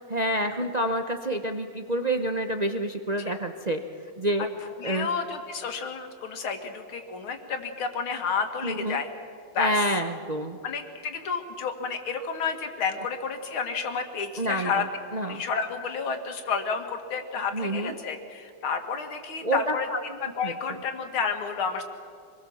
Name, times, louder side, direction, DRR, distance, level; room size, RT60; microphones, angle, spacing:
voice 1, 0.1-3.8 4.2-4.5 4.8-5.1 8.6-9.0 9.6-10.6 14.4-14.8 15.1-15.4 17.5-17.9 19.4-20.0 20.4-20.5, right 1 dB, 65° right, 5 dB, 0.4 m, -28 dB
voice 2, 4.8-9.1 9.5-9.8 10.6-14.8 15.2-21.8, left 5 dB, 70° left, 6 dB, 2.6 m, -30 dB
25.5 x 20.5 x 7.2 m, 2.2 s
omnidirectional pair, 2.4 m